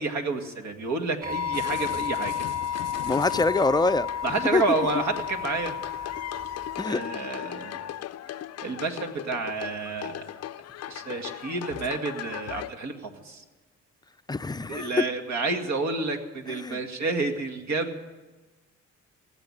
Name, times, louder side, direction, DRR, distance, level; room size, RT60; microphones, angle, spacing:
voice 1, 0.0-2.5 4.2-6.2 6.8-7.9 8.6-10.4 10.9-13.4 14.7-18.0, right 3 dB, 65° right, 4 dB, 2.1 m, -30 dB
sound 1, 1.2-6.8, left 9 dB, 30° right, 4.9 m, -32 dB
sound 2, 1.5-12.7, left 12 dB, 55° left, 0.5 m, -39 dB
voice 2, 3.0-4.1 4.5-4.6 6.8-7.0 14.3-14.9 16.6-16.8, left 3 dB, 15° left, 12 dB, 0.5 m, -24 dB
18.0 x 8.2 x 9.8 m, 1.2 s
cardioid pair, 90°, 30 cm